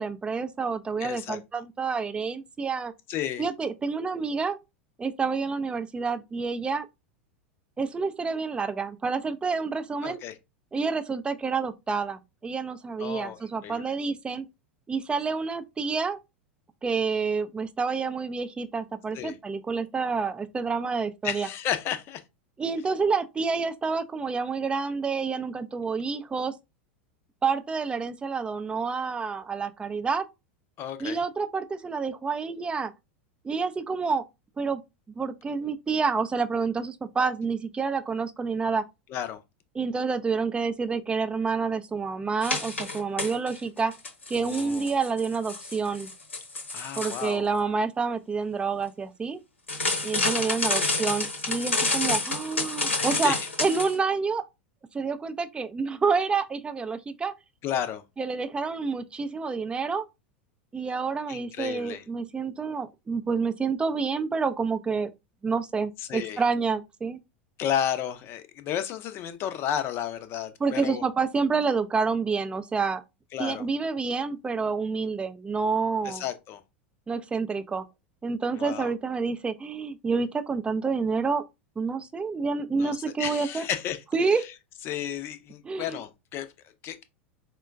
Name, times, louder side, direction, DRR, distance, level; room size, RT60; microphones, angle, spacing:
voice 1, 0.0-2.9 3.4-4.6 5.0-6.9 7.8-10.2 10.7-14.5 14.9-16.2 16.8-21.5 22.6-26.5 27.4-30.3 31.0-32.9 33.4-34.2 34.6-34.8 35.2-38.9 39.8-43.9 44.3-46.1 47.0-49.4 50.0-54.4 54.9-57.3 58.2-60.1 60.7-65.1 65.4-67.2 70.6-73.0 73.4-76.2 77.1-77.9 78.2-81.4 81.8-83.6 84.1-84.4 85.6-86.0, right 5 dB, 15° right, 0.4 m, -28 dB
voice 2, 1.0-1.6 3.1-3.5 10.0-10.3 13.0-13.9 19.1-19.4 21.2-22.2 30.8-31.2 39.1-39.4 44.4-44.9 46.7-47.5 50.3-51.0 53.0-53.4 57.6-58.0 61.3-62.1 66.0-66.4 67.6-71.0 73.3-73.7 76.0-76.6 78.6-78.9 82.8-84.0 84.3-84.5 84.8-87.0, left 10 dB, 40° left, 0.5 m, -33 dB
sound 1, 42.4-43.6 43.9-47.3 49.7-53.9, left 3 dB, 85° left, 0.9 m, -29 dB
4.3 x 2.2 x 2.4 m
figure-of-eight pair, 90°, 6 cm